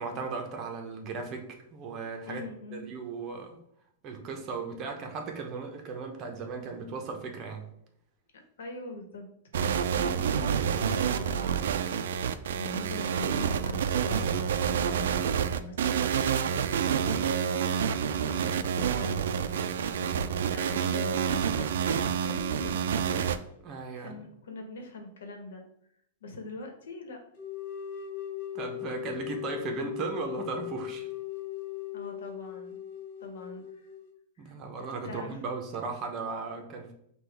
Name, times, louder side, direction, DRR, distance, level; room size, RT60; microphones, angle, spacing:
voice 1, 0.0-2.4 2.7-3.6 4.0-7.6 23.6-24.2 28.5-31.1 34.4-36.9, right 4 dB, 30° right, 3 dB, 0.8 m, -36 dB
voice 2, 2.2-2.9 8.6-9.3 9.5-12.0 12.5-16.5 17.1-19.6 20.5-21.7 22.2-22.8 24.0-25.6 26.2-27.2 31.9-32.8 33.2-33.9 34.4-34.5 35.0-35.4, left 2 dB, 90° left, 4 dB, 1.0 m, -42 dB
sound 1, 9.5-23.4, right 8 dB, 85° right, 0.3 m, -28 dB
sound 2, 27.4-34.1, left 11 dB, 50° left, 0.9 m, -39 dB
5.9 x 2.3 x 3.4 m, 0.72 s
supercardioid pair, 155°, 0 cm